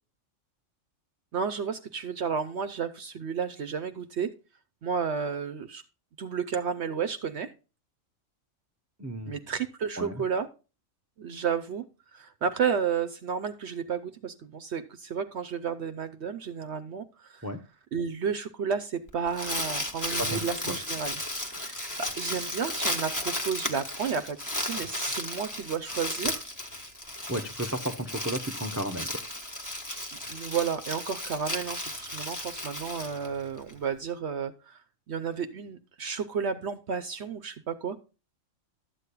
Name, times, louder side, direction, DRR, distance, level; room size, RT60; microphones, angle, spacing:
voice 1, 1.3-4.3 4.8-5.8 6.2-7.5 9.3-10.5 11.2-11.8 12.1-17.5 17.9-21.2 21.6-26.4 30.3-34.8 35.1-38.0, right 6 dB, 65° right, 10 dB, 1.0 m, -32 dB
voice 2, 9.0-9.3 10.0-10.2 17.4-17.6 20.2-20.5 27.3-29.1, right 1 dB, 15° right, 7 dB, 0.6 m, -33 dB
Crumpling crinkling, 19.1-33.7, left 1 dB, 15° left, 1.3 m, -34 dB
13.0 x 8.2 x 2.3 m, 0.31 s
omnidirectional pair, 1.3 m